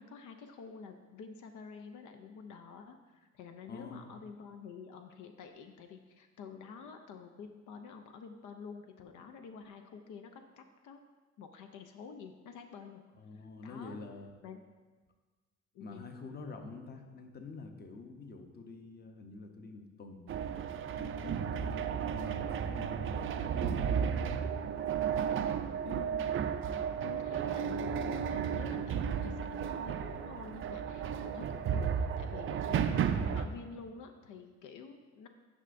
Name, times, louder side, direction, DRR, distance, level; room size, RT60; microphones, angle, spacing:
voice 1, 0.0-11.0 11.4-13.0 13.6-14.0 14.4-14.6 15.7-16.0 25.8-26.3 26.7-26.8 27.0-35.3, left 5 dB, 80° left, 6 dB, 0.5 m, -48 dB
voice 2, 3.7-4.1 13.2-14.4 15.8-20.3 20.9-24.4, left 4 dB, 35° left, 5 dB, 0.7 m, -47 dB
sound 1, 20.3-33.5, right 8 dB, 45° right, 0.4 m, -33 dB
9.8 x 5.6 x 2.5 m, 1.3 s
cardioid pair, 115°, 30 cm